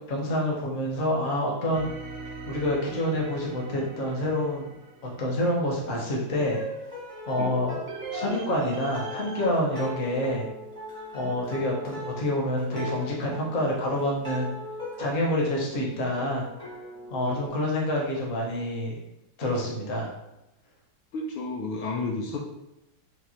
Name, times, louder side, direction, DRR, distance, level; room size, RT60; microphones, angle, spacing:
voice 1, 0.1-1.9 2.5-4.7 5.0-6.6 7.2-7.8 8.1-10.5 11.1-14.5 15.0-16.5 17.1-19.0 19.4-20.1, left 1 dB, 50° left, -2 dB, 1.1 m, -27 dB
sound 1, 1.7-5.9 7.9-9.5, right 3 dB, 90° right, 0.7 m, -41 dB
sound 2, 6.3-17.5, left 1 dB, 5° left, 0.4 m, -39 dB
voice 2, 21.1-22.4, left 3 dB, 75° left, -1 dB, 1.3 m, -32 dB
4.6 x 2.4 x 4.2 m, 0.90 s
omnidirectional pair, 2.3 m